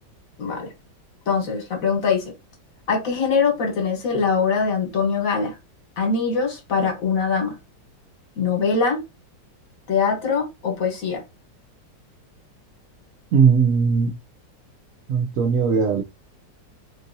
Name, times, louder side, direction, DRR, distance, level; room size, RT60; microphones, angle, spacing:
voice 1, 0.4-0.7 1.3-2.3 2.9-5.6 6.0-7.6 8.3-9.0 9.9-11.2, left 5 dB, 50° left, 1.5 m, -22 dB
voice 2, 13.3-14.2 15.1-16.0, right 6 dB, 75° right, 0.7 m, -18 dB
3.8 x 2.6 x 2.6 m
omnidirectional pair, 1.9 m